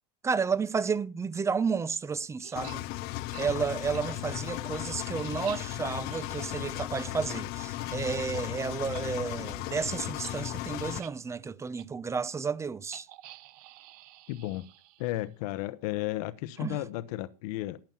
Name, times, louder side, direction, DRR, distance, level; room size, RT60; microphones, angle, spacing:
voice 1, 0.2-2.8 3.4-13.1 16.6-16.8, right 5 dB, 15° right, 0.6 m, -32 dB
sound 1, 2.4-2.8 3.3-3.5 3.9-4.0 4.5-8.5 8.8-9.0 9.3-9.4 9.7-9.8 10.2-10.4 10.8-11.1 11.8-11.9 12.9-15.3, right 16 dB, 65° right, 0.9 m, -50 dB
Engine, 2.6-11.0, left 17 dB, 50° left, 0.6 m, -36 dB
voice 2, 14.3-14.6 15.0-17.8, left 16 dB, 65° left, 0.9 m, -33 dB
12.0 x 9.0 x 7.0 m
supercardioid pair, 120°, 21 cm